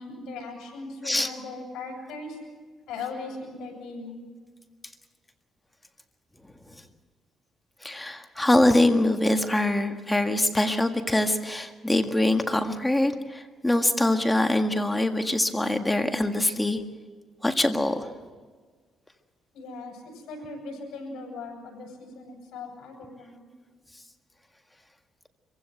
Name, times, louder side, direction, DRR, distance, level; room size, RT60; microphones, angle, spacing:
voice 1, 0.0-2.4 2.9-4.2 19.5-23.5, left 3 dB, 80° left, 1 dB, 7.7 m, -39 dB
voice 2, 7.8-16.8 17.4-18.1, left 1 dB, 10° left, 6 dB, 1.8 m, -23 dB
25.0 x 16.0 x 7.9 m, 1.5 s
cardioid pair, 90°, 0 cm